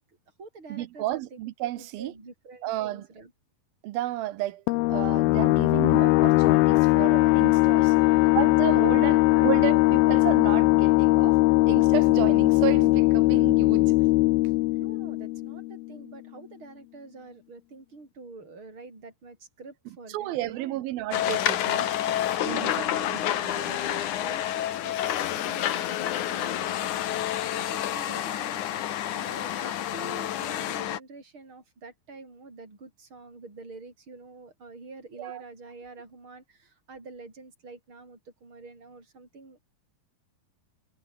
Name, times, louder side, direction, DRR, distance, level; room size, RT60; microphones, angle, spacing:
voice 1, 0.0-1.4 1.7-3.3 7.8-9.5 14.8-20.8 22.9-26.9 27.5-28.6 29.1-39.6, right 3 dB, 30° right, 8.0 m, -47 dB
voice 2, 0.7-2.1 2.6-3.1 3.8-4.6 4.9-7.9 8.4-11.4 11.7-14.0 20.1-23.8 35.2-35.4, right 15 dB, 75° right, 2.6 m, -32 dB
sound 1, 4.7-16.0, left 22 dB, 80° left, 2.3 m, -20 dB
sound 2, 21.1-31.0, left 12 dB, 60° left, 2.4 m, -29 dB
omnidirectional pair, 4.6 m